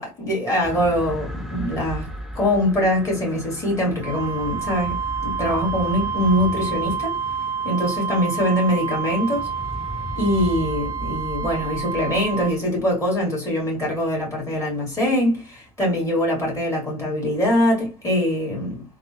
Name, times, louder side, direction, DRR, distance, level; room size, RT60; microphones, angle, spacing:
voice 1, 0.0-2.1 2.3-5.0 5.2-7.2 7.6-9.5 10.2-18.8, left 1 dB, 20° left, 1.8 m, -23 dB
sound 1, 0.6-14.9 15.8-15.9, equal, ahead, 0.4 m, -36 dB
Wind instrument woodwind instrument, 4.0-12.6, right 6 dB, 65° right, 0.6 m, -29 dB
3.6 x 2.0 x 2.8 m
cardioid pair, 150°, 16 cm